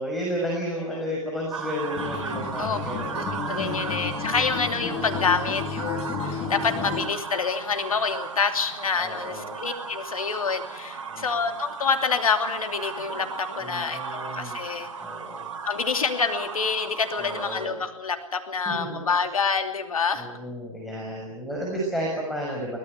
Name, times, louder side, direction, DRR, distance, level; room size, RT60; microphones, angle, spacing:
voice 1, 0.0-3.1 3.4-3.9 4.9-5.3 6.3-6.8 9.0-9.6 11.1-11.5 13.6-14.6 15.0-15.5 17.2-17.8 18.6-19.0 20.1-22.8, equal, ahead, -2 dB, 6.5 m, -33 dB
sound 1, 1.5-17.7, right 5 dB, 65° right, 4.0 m, -36 dB
Acoustic guitar, 2.0-7.1, left 6 dB, 35° left, 3.3 m, -32 dB
voice 2, 3.1-14.9 15.7-20.3, left 5 dB, 80° left, 7 dB, 2.8 m, -27 dB
23.5 x 18.5 x 8.2 m, 0.86 s
hypercardioid pair, 115°, 18 cm